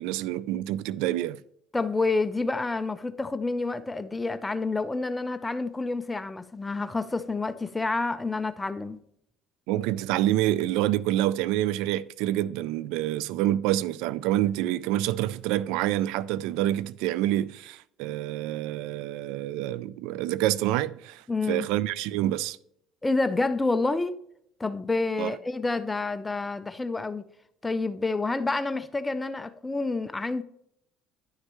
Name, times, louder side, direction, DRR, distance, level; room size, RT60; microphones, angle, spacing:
voice 1, 0.0-1.4 9.7-22.6 25.2-25.4, right 14 dB, 80° right, 0.3 m, -27 dB
voice 2, 1.7-9.0 21.3-21.7 23.0-24.2 24.6-27.2 27.6-30.4, left 3 dB, 15° left, 0.5 m, -28 dB
10.5 x 6.5 x 3.1 m
supercardioid pair, 85°, 0 cm